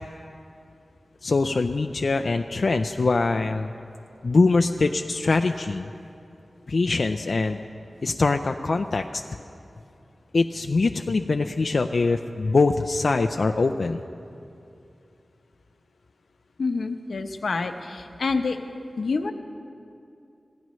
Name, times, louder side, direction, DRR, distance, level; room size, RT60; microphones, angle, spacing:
voice 1, 1.2-3.7 4.2-5.9 6.7-7.6 8.0-9.2 10.3-14.0, left 3 dB, 60° left, 5 dB, 0.4 m, -23 dB
voice 2, 16.6-18.6 19.0-19.3, left 4 dB, 85° left, 6 dB, 0.8 m, -27 dB
25.5 x 16.5 x 3.1 m, 2.6 s
wide cardioid pair, 95°, 0 cm